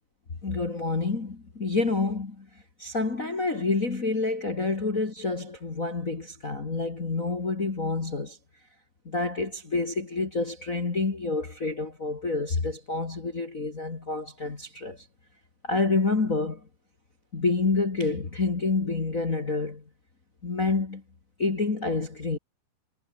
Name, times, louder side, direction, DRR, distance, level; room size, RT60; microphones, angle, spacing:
voice 1, 0.4-2.4 2.8-8.4 9.0-15.0 15.6-16.6 17.3-19.8 20.4-21.0 21.4-22.4, left 3 dB, 55° left, 0.9 m, -28 dB
omnidirectional pair, 5.5 m